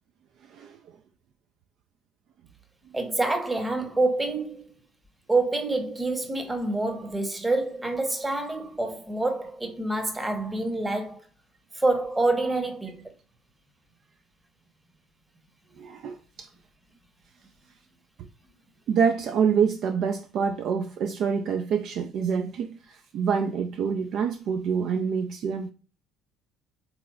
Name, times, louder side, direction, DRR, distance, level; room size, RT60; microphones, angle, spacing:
voice 1, 2.9-4.6 5.3-11.2 11.8-13.0, right 2 dB, 15° right, 0.9 m, -27 dB
voice 2, 15.8-16.5 18.9-25.7, right 6 dB, 55° right, 0.4 m, -26 dB
3.8 x 3.0 x 2.3 m
hypercardioid pair, 55°, 0 cm